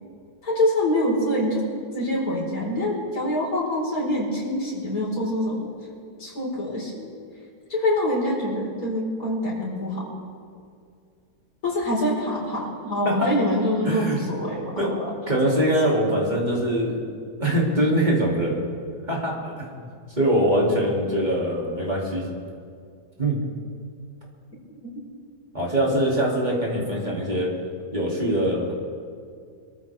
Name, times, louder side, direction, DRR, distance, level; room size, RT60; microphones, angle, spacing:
voice 1, 0.4-1.7 1.9-5.7 6.2-7.1 7.7-10.1 11.6-15.1 15.4-15.5, left 1 dB, 65° left, -5 dB, 5.2 m, -25 dB
voice 2, 13.8-14.2 14.8-15.0 15.3-18.6 19.1-19.9 20.2-22.3 23.2-23.4 25.5-27.5 27.9-28.7, right 1 dB, 25° right, -4 dB, 3.1 m, -23 dB
25.5 x 14.0 x 3.6 m, 2.3 s
omnidirectional pair, 1.7 m